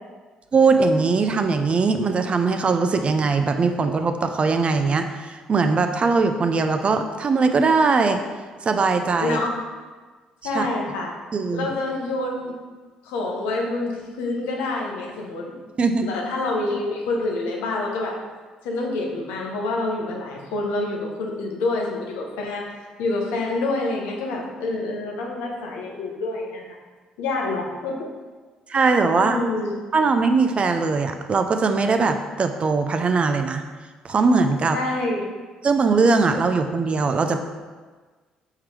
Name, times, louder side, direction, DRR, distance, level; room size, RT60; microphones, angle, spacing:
voice 1, 0.5-8.2 8.6-9.5 10.5-10.7 11.3-11.7 15.8-16.1 28.7-29.4 29.9-33.6 34.0-34.8 35.6-37.4, right 4 dB, 40° right, 7 dB, 0.4 m, -20 dB
voice 2, 9.2-9.6 10.4-11.1 11.5-12.6 13.0-15.5 16.0-18.2 18.6-26.8 27.2-28.1 29.1-29.7 34.7-35.3, left 2 dB, 90° left, 0 dB, 0.7 m, -27 dB
4.5 x 3.7 x 3.2 m, 1.4 s
supercardioid pair, 65°, 3 cm